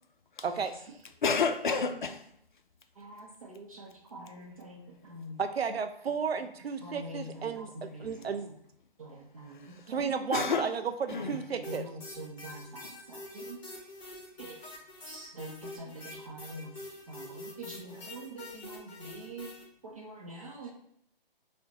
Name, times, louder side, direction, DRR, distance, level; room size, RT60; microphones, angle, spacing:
voice 1, 1.2-2.3 9.5-9.8 10.3-10.7 11.1-11.4 12.8-12.9, left 5 dB, 55° left, 0.5 m, -30 dB
voice 2, 3.0-5.4 6.8-8.6 9.0-10.1 11.1-13.6 14.4-14.6 15.0-16.8 17.1-19.5 19.8-20.7, right 1 dB, 35° right, 0.6 m, -45 dB
voice 3, 5.4-7.7 8.0-8.5 9.9-10.8 11.3-11.8, right 6 dB, 90° right, 0.5 m, -33 dB
sound 1, 11.6-19.6, left 1 dB, 30° left, 1.1 m, -46 dB
4.8 x 2.1 x 2.9 m
figure-of-eight pair, 155°, 30 cm